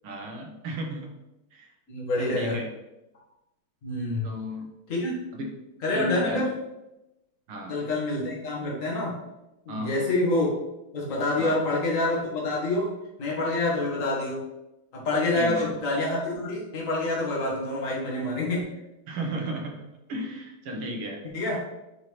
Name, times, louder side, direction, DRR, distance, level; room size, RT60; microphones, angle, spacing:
voice 1, 0.0-1.1 1.5-1.7 2.2-2.7 4.2-4.7 5.3-5.5 5.9-6.4 7.5-7.8 9.7-9.9 11.4-11.6 15.3-15.7 19.1-21.2, equal, 80° right, 1 dB, 2.0 m, -34 dB
voice 2, 1.9-2.6 3.8-4.3 4.9-5.2 5.8-6.4 7.7-9.1 9.7-10.5 10.9-12.9 13.2-14.4 15.0-18.6 21.3-21.6, left 2 dB, 40° left, -4 dB, 1.9 m, -27 dB
8.2 x 4.3 x 3.2 m, 0.95 s
omnidirectional pair, 2.4 m